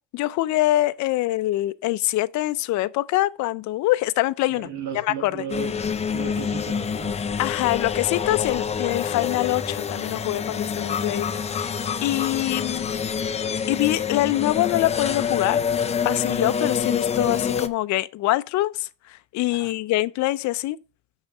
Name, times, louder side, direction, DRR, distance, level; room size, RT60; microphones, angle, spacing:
voice 1, 0.1-4.7 4.9-5.4 7.4-11.3 11.6-11.7 12.0-12.9 13.7-15.6 16.0-18.9 19.3-20.8, left 17 dB, 70° left, 0.5 m, -24 dB
voice 2, 4.5-5.7 6.0-7.2 19.5-19.7, right 7 dB, 75° right, 2.3 m, -35 dB
sound 1, 5.5-17.7, left 6 dB, 20° left, 0.5 m, -27 dB
6.4 x 5.6 x 5.9 m
cardioid pair, 160°, 29 cm